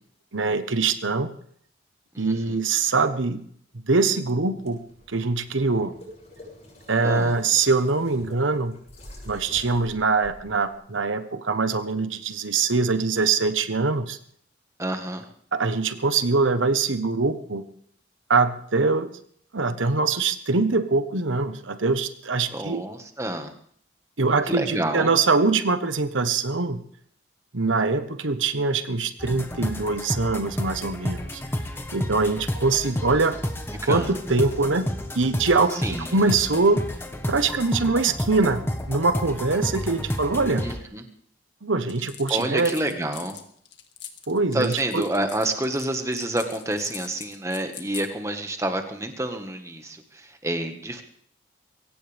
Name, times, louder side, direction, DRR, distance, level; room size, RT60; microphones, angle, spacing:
voice 1, 0.3-1.3 2.2-3.4 3.9-4.8 5.1-5.9 6.9-8.7 9.2-14.2 15.5-17.6 18.3-19.1 19.5-22.8 24.2-26.8 27.5-31.4 31.9-33.3 33.9-34.9 35.1-36.8 37.3-40.7 41.6-42.7 44.3-45.0, right 3 dB, 90° right, 10 dB, 1.2 m, -23 dB
voice 2, 2.1-2.6 7.0-7.3 14.8-15.3 22.5-23.5 24.5-25.1 33.8-34.2 35.8-36.1 40.6-41.0 42.3-43.4 44.5-51.0, right 1 dB, 15° right, 5 dB, 1.6 m, -28 dB
sound 1, 4.6-10.7, left 1 dB, 35° left, 7.4 m, -47 dB
sound 2, 29.2-40.8, equal, 10° left, 1.3 m, -31 dB
sound 3, 41.9-48.1, left 10 dB, 65° left, 1.9 m, -41 dB
23.0 x 17.0 x 3.5 m, 0.63 s
head